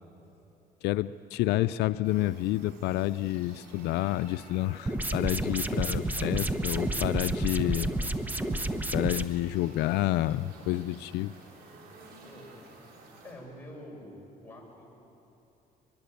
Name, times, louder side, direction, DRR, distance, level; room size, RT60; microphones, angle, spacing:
voice 1, 0.8-7.9 8.9-11.3, left 15 dB, 85° left, 14 dB, 0.5 m, -29 dB
sound 1, 2.0-13.3, right 2 dB, 75° right, 6.3 m, -52 dB
sound 2, 4.9-9.2, right 1 dB, 10° right, 1.1 m, -30 dB
voice 2, 6.0-6.6 7.7-8.1 9.8-10.4 12.2-12.6 13.2-14.9, equal, 10° left, -3 dB, 7.6 m, -48 dB
23.0 x 22.5 x 8.4 m, 2.9 s
cardioid pair, 110°, 17 cm